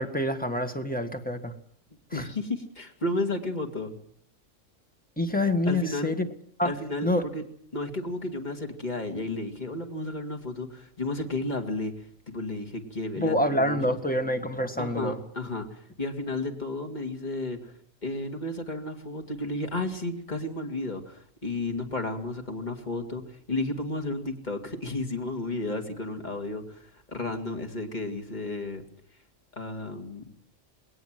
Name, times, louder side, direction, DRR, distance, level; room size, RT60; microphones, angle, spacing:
voice 1, 0.0-1.5 2.1-2.2 5.2-6.3 6.6-6.7 7.0-7.2 13.2-15.2, left 1 dB, 5° left, 5 dB, 1.7 m, -27 dB
voice 2, 2.1-3.9 5.7-6.1 6.6-7.4 7.7-11.9 12.3-13.8 14.1-14.2 14.8-17.7 18.0-28.8 29.5-30.2, left 2 dB, 35° left, 4 dB, 2.6 m, -33 dB
20.5 x 18.5 x 7.6 m, 0.63 s
omnidirectional pair, 1.3 m